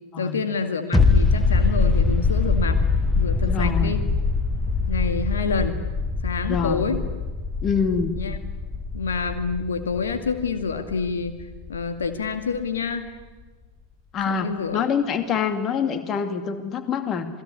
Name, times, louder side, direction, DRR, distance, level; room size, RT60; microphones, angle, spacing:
voice 1, 0.2-2.8 3.2-4.0 4.9-5.8 6.2-7.0 8.2-8.4 8.9-11.4 11.7-13.1 14.3-14.8, left 5 dB, 65° left, 8 dB, 2.2 m, -27 dB
sound 1, 0.9-12.3 12.6-12.7, left 4 dB, 5° left, 1.4 m, -23 dB
voice 2, 3.5-4.0 4.5-4.8 6.5-6.9 7.6-8.2 14.1-17.3, left 6 dB, 30° left, 9 dB, 2.4 m, -26 dB
27.5 x 20.5 x 9.8 m, 1.3 s
figure-of-eight pair, 90°, 0 cm